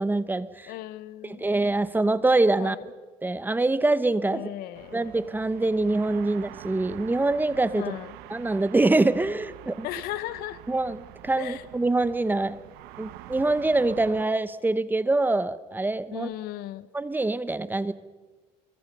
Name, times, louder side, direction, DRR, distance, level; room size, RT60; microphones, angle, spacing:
voice 1, 0.0-0.7 1.4-2.8 3.2-4.4 4.9-7.8 8.3-9.8 10.7-11.0 11.2-12.6 13.0-16.3 16.9-17.9, right 2 dB, 10° right, 15 dB, 0.9 m, -24 dB
voice 2, 0.7-1.5 2.6-2.8 4.3-5.0 7.7-8.2 9.8-10.6 11.3-11.7 16.1-16.9, left 15 dB, 75° left, 16 dB, 1.1 m, -36 dB
sound 1, 4.7-14.3, right 15 dB, 85° right, 1.1 m, -46 dB
26.0 x 23.0 x 5.4 m, 1.3 s
cardioid pair, 115°, 16 cm